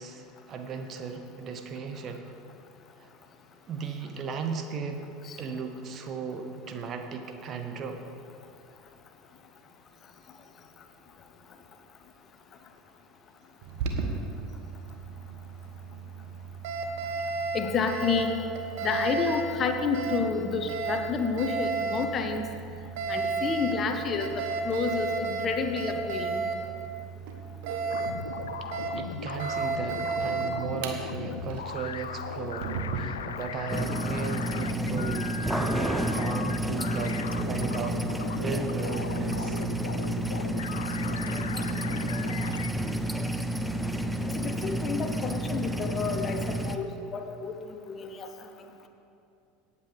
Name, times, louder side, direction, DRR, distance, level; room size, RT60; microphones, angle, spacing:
voice 1, 0.0-2.4 3.0-3.1 3.7-5.0 5.4-8.0 28.9-38.1 38.3-39.6, right 5 dB, 40° right, 5 dB, 1.0 m, -36 dB
Alarm, 13.6-33.0, right 4 dB, 60° right, 1.2 m, -33 dB
voice 2, 17.5-18.3 18.8-22.5 23.1-26.4 44.3-48.3, left 5 dB, 35° left, 6 dB, 1.0 m, -30 dB
sound 1, 27.9-42.7, left 7 dB, 75° left, 0.4 m, -38 dB
sound 2, 33.7-46.8, right 1 dB, ahead, 0.7 m, -30 dB
18.0 x 8.3 x 3.5 m, 2.7 s
figure-of-eight pair, 75°, 0 cm